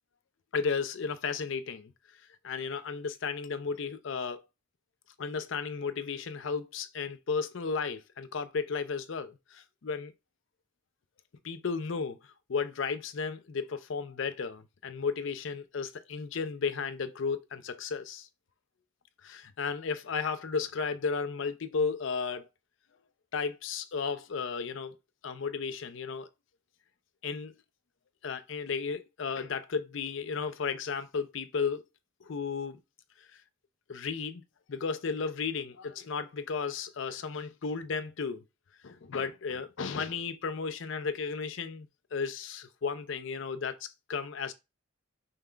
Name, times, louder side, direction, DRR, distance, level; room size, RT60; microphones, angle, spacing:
voice 1, 0.5-1.9 2.4-4.4 5.2-10.1 11.4-12.2 12.5-18.3 19.2-22.4 23.3-25.0 25.2-26.3 27.2-27.5 28.2-31.8 32.2-32.8 33.9-34.4 34.7-38.4 38.8-44.5, left 5 dB, 65° left, 0.5 m, -34 dB
5.6 x 2.3 x 3.3 m
head